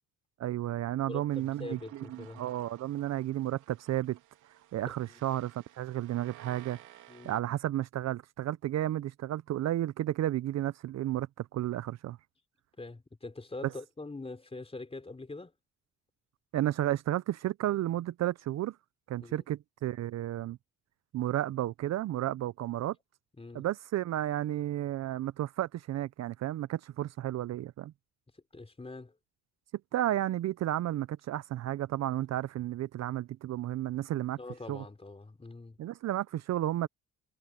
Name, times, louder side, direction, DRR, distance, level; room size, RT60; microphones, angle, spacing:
voice 1, 0.4-4.2 4.7-6.8 7.2-12.2 13.6-13.7 16.5-18.8 19.1-20.6 21.1-23.0 23.5-27.9 29.9-34.4 34.7-34.8 35.8-36.9, right 13 dB, 60° right, 0.5 m, -32 dB
voice 2, 1.1-2.5 4.9-5.2 7.1-7.4 12.8-15.5 19.2-19.4 23.4-23.7 28.5-29.1 34.4-35.8, left 2 dB, 20° left, 3.9 m, -44 dB
sound 1, 1.3-7.4, right 13 dB, 90° right, 3.1 m, -56 dB
cardioid pair, 90°, 30 cm